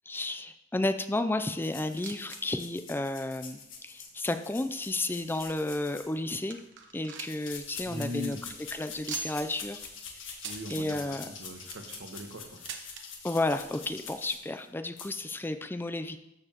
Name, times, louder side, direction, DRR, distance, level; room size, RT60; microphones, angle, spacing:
voice 1, 0.1-6.6 6.9-8.4 8.7-9.8 10.2-10.4 10.7-11.3 13.2-16.2, left 2 dB, 10° left, 9 dB, 0.4 m, -32 dB
sound 1, 1.6-6.5 7.2-14.7 15.0-15.1, left 6 dB, 80° left, 1.5 m, -45 dB
sound 2, 2.0-2.4 2.7-2.8 3.5-3.6 4.3-5.8 6.2-6.3 6.5-7.5 7.8-7.9 8.2-8.4 9.1-9.6 10.4-10.8 11.4-11.9 12.7-13.0 14.0-14.1 14.3-14.4 15.2-15.3, right 6 dB, 65° right, 1.0 m, -42 dB
voice 2, 7.8-8.4 10.4-12.6, left 1 dB, 85° right, 4 dB, 1.2 m, -40 dB
13.0 x 6.9 x 2.9 m, 0.86 s
head